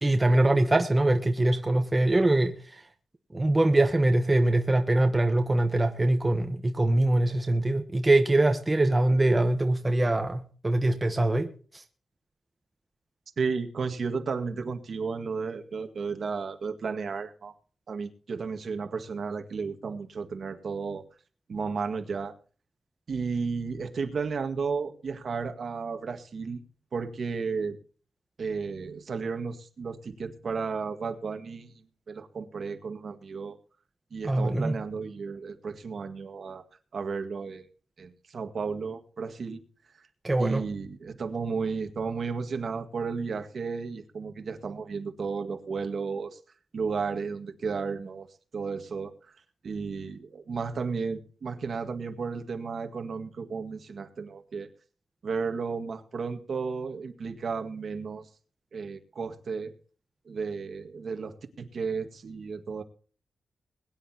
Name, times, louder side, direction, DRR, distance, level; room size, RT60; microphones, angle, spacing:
voice 1, 0.0-2.8 3.3-11.8 34.2-34.7 40.2-40.6, right 2 dB, 15° right, 1.0 m, -23 dB
voice 2, 13.4-17.5 17.9-21.0 21.5-22.3 23.1-26.6 26.9-27.8 28.4-31.7 32.1-33.6 34.1-36.6 36.9-37.6 38.0-39.6 40.4-46.4 46.7-48.3 48.5-49.3 49.6-54.7 55.2-58.3 58.7-59.7 60.3-62.8, right 5 dB, 50° right, 1.8 m, -33 dB
22.0 x 10.5 x 2.9 m
wide cardioid pair, 160°, 0 cm